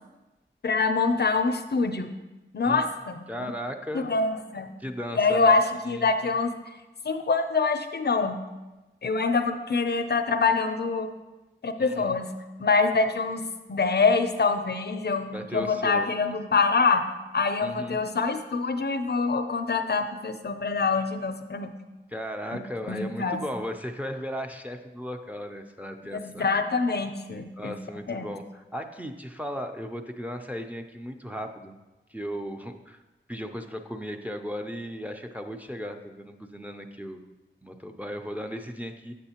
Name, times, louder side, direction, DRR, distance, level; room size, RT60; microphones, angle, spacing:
voice 1, 0.6-2.1 2.5-3.5 3.9-4.7 5.1-6.5 7.0-8.4 9.0-11.1 11.6-12.3 12.6-17.1 17.3-21.7 22.9-23.4 26.0-27.8 28.1-28.2, left 4 dB, 55° left, 8 dB, 0.5 m, -25 dB
voice 2, 3.3-4.1 4.8-5.6 5.8-6.1 11.8-12.1 15.3-16.1 17.6-18.0 22.1-26.5 27.6-31.7 32.1-33.0 33.3-37.3 37.6-39.1, equal, 5° right, 5 dB, 0.4 m, -36 dB
7.9 x 6.1 x 2.9 m, 1.1 s
wide cardioid pair, 75°, 20 cm